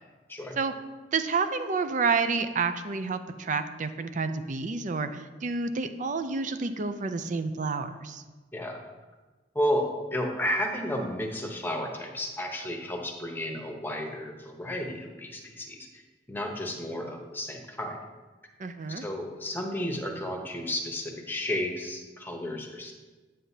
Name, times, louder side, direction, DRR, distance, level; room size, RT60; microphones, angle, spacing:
voice 1, 1.1-8.2 18.6-19.0, right 4 dB, 45° right, 10 dB, 0.5 m, -29 dB
voice 2, 9.5-16.0 16.3-18.0 18.9-22.9, left 1 dB, 10° left, 2 dB, 0.9 m, -32 dB
8.6 x 7.6 x 2.7 m, 1.3 s
head